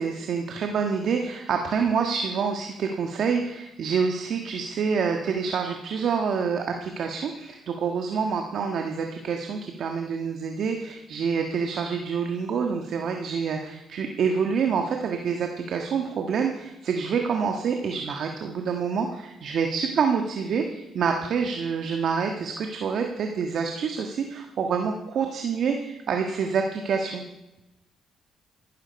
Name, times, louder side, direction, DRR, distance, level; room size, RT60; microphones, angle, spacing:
voice 1, 0.0-27.2, right 6 dB, 65° right, 4 dB, 1.5 m, -27 dB
14.5 x 12.5 x 5.3 m, 0.97 s
cardioid pair, 90°, 0 cm